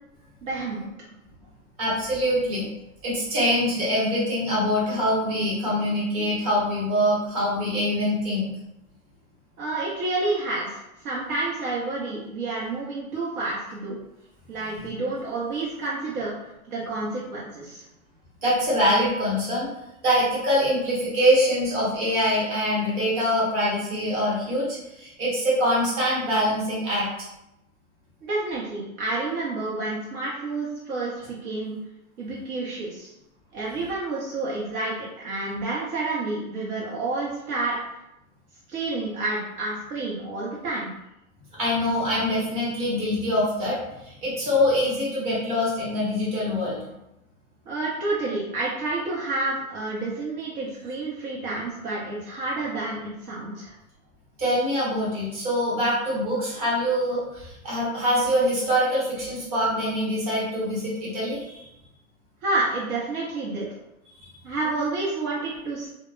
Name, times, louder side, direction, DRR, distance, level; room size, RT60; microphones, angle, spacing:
voice 1, 0.4-0.9 9.6-14.0 14.5-16.3 16.7-17.8 28.2-31.8 32.2-33.1 33.5-37.8 38.7-40.9 47.7-53.8 62.4-63.7 64.4-65.9, right 2 dB, 75° right, -6 dB, 0.8 m, -29 dB
voice 2, 1.8-2.7 3.0-8.5 14.7-14.8 18.4-19.7 20.0-27.1 41.6-43.8 44.0-46.8 54.4-61.6 64.2-64.3, equal, 25° right, -7 dB, 0.9 m, -24 dB
2.1 x 2.1 x 3.1 m, 0.88 s
hypercardioid pair, 155°, 44 cm